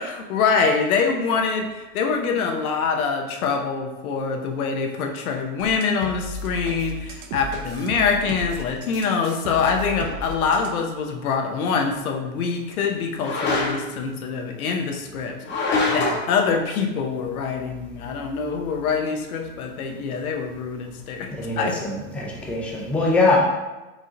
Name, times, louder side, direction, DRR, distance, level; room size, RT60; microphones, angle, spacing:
voice 1, 0.0-21.3 21.6-21.7, left 5 dB, 90° left, 3 dB, 0.8 m, -25 dB
sound 1, 5.6-10.8, right 1 dB, 45° right, 0.6 m, -35 dB
sound 2, 10.0-10.2 13.2-14.0 15.4-16.3, left 3 dB, 25° left, 0.8 m, -24 dB
voice 2, 21.3-23.4, left 3 dB, 5° left, -3 dB, 0.4 m, -23 dB
4.9 x 2.7 x 3.7 m, 1.1 s
supercardioid pair, 135°, 42 cm